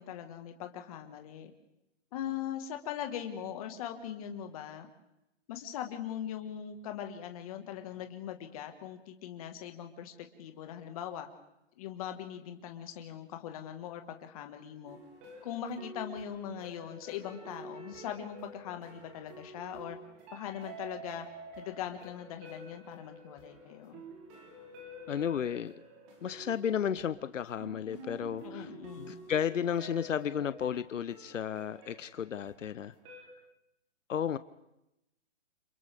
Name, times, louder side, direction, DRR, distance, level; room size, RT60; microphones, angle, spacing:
voice 1, 0.0-1.5 2.1-4.9 5.5-11.3 11.8-15.0 15.4-20.0 20.3-21.3 21.6-24.0 28.4-29.2, left 9 dB, 30° left, 1.7 m, -41 dB
sound 1, 14.9-33.3, right 2 dB, 20° right, 3.1 m, -49 dB
voice 2, 25.1-25.7 26.2-28.7 29.0-32.9 34.1-34.4, left 8 dB, 85° left, 0.9 m, -33 dB
29.5 x 27.0 x 3.6 m
hypercardioid pair, 160°, 37 cm